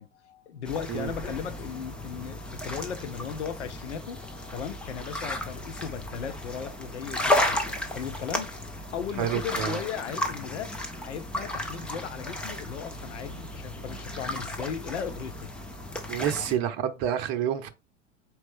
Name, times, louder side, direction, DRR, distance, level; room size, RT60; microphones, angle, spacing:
voice 1, 0.0-10.7 11.0-15.5 16.4-16.6, left 7 dB, 70° left, 0.8 m, -37 dB
sound 1, 0.6-16.5, left 1 dB, 5° left, 0.3 m, -33 dB
voice 2, 9.2-9.8 16.1-17.7, right 10 dB, 40° right, 0.7 m, -28 dB
4.3 x 2.9 x 3.4 m
figure-of-eight pair, 80°, 37 cm